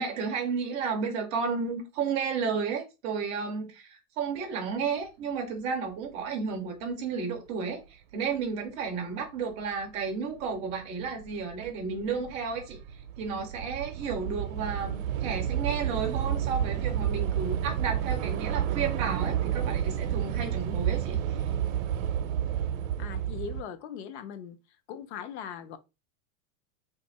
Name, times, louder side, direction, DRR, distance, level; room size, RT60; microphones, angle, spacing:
voice 1, 0.0-12.8 13.2-21.2, right 5 dB, 20° right, 0.3 m, -32 dB
Train / Subway metro underground, 9.6-9.7 10.5-10.8 11.1-23.6, right 10 dB, 75° right, 0.5 m, -30 dB
voice 2, 23.0-24.6 24.9-25.8, left 8 dB, 55° left, 0.6 m, -40 dB
2.7 x 2.4 x 4.0 m
supercardioid pair, 160°, 40 cm